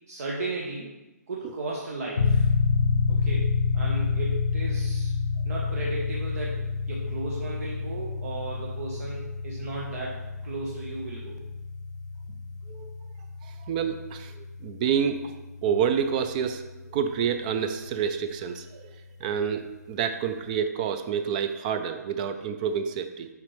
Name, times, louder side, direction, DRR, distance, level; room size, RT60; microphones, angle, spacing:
voice 1, 0.1-0.9 1.3-2.5 3.1-5.1 5.4-6.6 6.9-11.4 12.3-12.4, right 2 dB, 60° right, -3 dB, 1.1 m, -35 dB
sound 1, 2.2-16.6, left 5 dB, 80° left, 0.7 m, -29 dB
voice 2, 13.4-15.3 15.6-16.6 16.9-18.9 19.2-23.3, right 7 dB, 25° right, 9 dB, 0.4 m, -28 dB
7.2 x 5.1 x 3.2 m, 1.1 s
hypercardioid pair, 150°, 9 cm